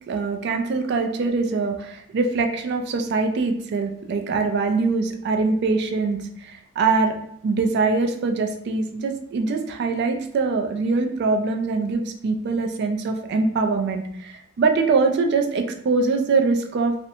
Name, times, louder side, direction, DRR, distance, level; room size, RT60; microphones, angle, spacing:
voice 1, 0.1-7.2 7.4-16.9, right 4 dB, 55° right, 5 dB, 0.3 m, -23 dB
2.7 x 2.1 x 2.6 m, 0.68 s
head